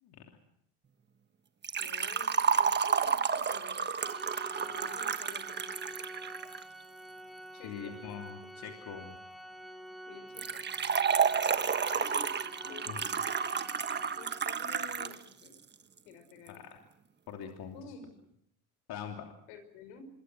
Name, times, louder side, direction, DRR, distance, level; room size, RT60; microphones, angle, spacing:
Liquid, 1.6-6.6 10.4-15.2 15.5-15.6 16.5-16.6, right 6 dB, 25° right, 1.3 m, -31 dB
voice 1, 1.8-3.8 4.6-5.6 7.5-8.0 8.4-8.9 10.1-10.6 12.0-12.3 12.6-13.8 14.2-15.6 16.0-16.6 17.7-18.1 19.5-20.0, left 6 dB, 80° left, 10 dB, 5.6 m, -51 dB
Organ, 4.0-14.7, right 1 dB, ahead, 2.9 m, -48 dB
voice 2, 7.6-9.2 12.9-13.1 16.5-16.8 17.3-17.9 18.9-19.3, left 8 dB, 55° left, 3 dB, 3.1 m, -43 dB
26.0 x 22.5 x 6.3 m, 0.74 s
supercardioid pair, 105°, 44 cm